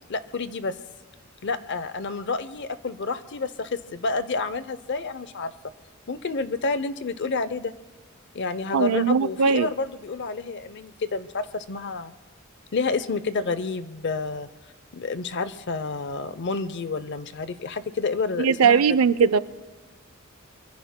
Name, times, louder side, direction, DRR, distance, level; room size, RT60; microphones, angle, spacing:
voice 1, 0.1-0.7 1.4-5.5 6.1-7.7 8.3-12.1 12.7-14.5 14.9-18.8 19.2-19.3, left 4 dB, 55° left, 0.6 m, -29 dB
voice 2, 8.7-9.7 18.4-19.4, right 6 dB, 85° right, 0.5 m, -19 dB
24.0 x 23.5 x 2.2 m
head